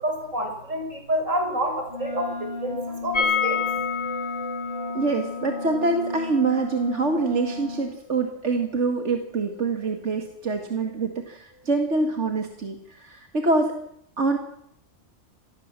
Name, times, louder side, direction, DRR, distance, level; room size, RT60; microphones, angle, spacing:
voice 1, 0.0-3.6, right 1 dB, 85° right, 4 dB, 6.4 m, -28 dB
Wind instrument woodwind instrument, 1.9-7.9, left 3 dB, 40° left, 6.5 m, -34 dB
sound 1, 3.1-8.9 9.2-9.3 9.5-9.6, left 6 dB, 70° left, 4.4 m, -30 dB
voice 2, 4.9-13.8 14.2-14.4, right 3 dB, 65° right, 4 dB, 2.4 m, -25 dB
26.5 x 20.0 x 7.6 m, 0.72 s
omnidirectional pair, 1.3 m